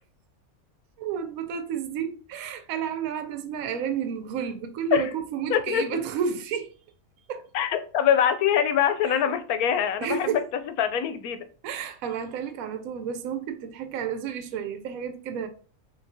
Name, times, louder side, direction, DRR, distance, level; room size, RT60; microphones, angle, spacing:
voice 1, 1.0-6.7 7.3-7.5 9.0-9.4 10.0-10.4 11.6-15.5, right 7 dB, 75° right, 1.0 m, -31 dB
voice 2, 5.5-5.8 7.5-10.4 10.8-11.4, left 9 dB, 85° left, 1.1 m, -23 dB
5.9 x 2.7 x 2.7 m
omnidirectional pair, 1.5 m